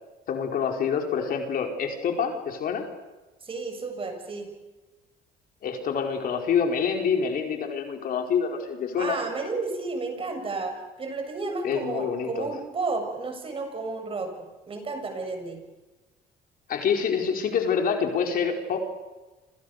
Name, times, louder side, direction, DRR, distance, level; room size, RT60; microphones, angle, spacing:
voice 1, 0.3-2.8 5.6-9.2 11.6-12.5 16.7-18.9, left 6 dB, 60° left, 3 dB, 4.9 m, -26 dB
voice 2, 3.4-4.5 9.0-14.3 14.7-15.6, right 3 dB, 35° right, 5 dB, 7.4 m, -32 dB
28.5 x 27.0 x 6.8 m, 1.1 s
cardioid pair, 110°, 17 cm